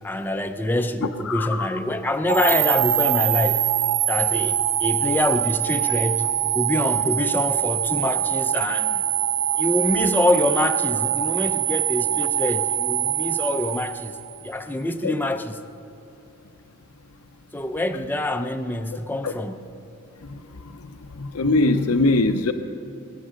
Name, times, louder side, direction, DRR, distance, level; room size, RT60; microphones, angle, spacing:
voice 1, 0.0-3.6 4.1-6.3 6.5-9.1 9.6-14.2 14.4-15.6 17.5-19.7, left 1 dB, 10° left, 7 dB, 0.5 m, -25 dB
voice 2, 1.3-1.7 15.0-15.1 19.2-19.3 20.2-20.4 20.6-20.8 21.2-22.5, left 2 dB, 75° left, 8 dB, 0.7 m, -22 dB
sound 1, 2.3-14.5, right 12 dB, 55° right, 0.6 m, -23 dB
20.5 x 9.9 x 6.4 m, 2.7 s
head